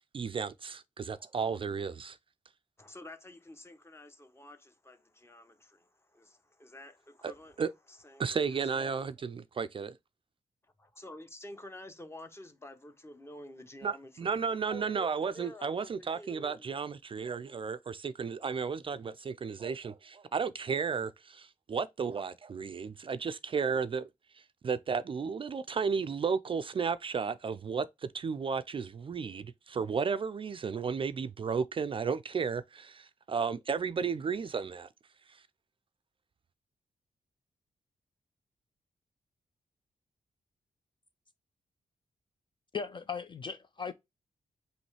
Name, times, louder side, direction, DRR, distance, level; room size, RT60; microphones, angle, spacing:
voice 1, 0.1-2.2 7.2-7.3 7.6-7.7 8.2-10.0 13.8-24.1 24.3-34.9 35.3-35.4, right 5 dB, 40° right, 0.4 m, -33 dB
voice 2, 2.8-7.6 7.9-8.8 10.8-14.3 14.7-16.7, left 1 dB, 20° left, 0.9 m, -49 dB
voice 3, 42.7-43.9, left 6 dB, 35° left, 0.4 m, -37 dB
5.2 x 3.1 x 3.2 m
wide cardioid pair, 140°, 14 cm